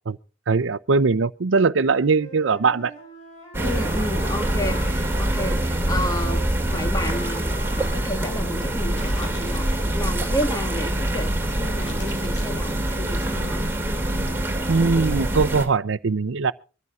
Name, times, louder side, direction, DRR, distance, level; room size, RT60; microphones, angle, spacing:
voice 1, 0.5-2.9 14.7-16.5, right 4 dB, 70° right, 0.6 m, -21 dB
Wind instrument woodwind instrument, 2.1-5.6 5.9-10.1, equal, 35° left, 7.6 m, -41 dB
sound 1, 3.5-15.7, right 1 dB, 10° right, 2.5 m, -25 dB
voice 2, 3.6-13.7, left 1 dB, 20° left, 1.7 m, -31 dB
sound 2, 8.9-9.8 10.2-10.6 11.2-11.3 11.7-12.7, left 3 dB, 65° left, 6.9 m, -45 dB
24.0 x 14.0 x 2.4 m
head